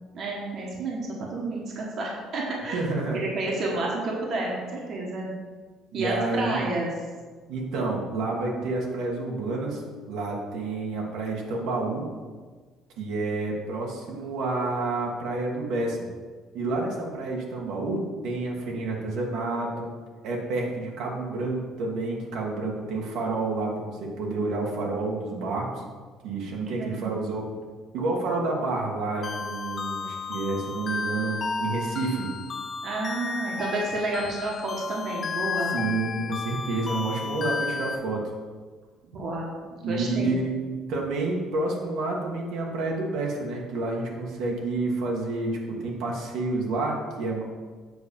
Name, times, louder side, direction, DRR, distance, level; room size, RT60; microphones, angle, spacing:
voice 1, 0.1-2.9 3.3-5.3 5.9-6.9 26.3-27.2 32.8-35.7 39.1-40.4, right 2 dB, 45° right, -2 dB, 1.6 m, -30 dB
voice 2, 2.7-3.2 5.9-6.6 7.5-12.1 13.0-16.1 16.5-19.9 20.2-25.8 26.2-27.5 27.9-32.3 35.7-38.3 39.8-40.6 40.9-47.4, right 2 dB, 70° right, -1 dB, 1.7 m, -29 dB
sound 1, 29.2-38.0, left 4 dB, 30° left, 0.5 m, -33 dB
8.0 x 4.1 x 6.9 m, 1.4 s
cardioid pair, 155°, 0 cm